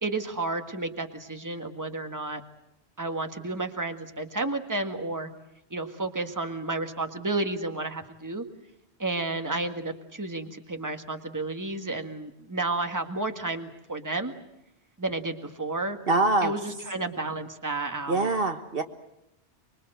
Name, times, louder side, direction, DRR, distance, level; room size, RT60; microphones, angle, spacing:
voice 1, 0.0-2.4 3.0-5.3 5.7-8.4 9.0-14.3 15.0-16.0 16.4-18.3, right 2 dB, 15° right, 6 dB, 1.7 m, -31 dB
voice 2, 16.1-16.5 18.1-18.8, right 2 dB, 55° right, 7 dB, 1.6 m, -24 dB
25.5 x 22.5 x 7.9 m, 0.85 s
omnidirectional pair, 1.1 m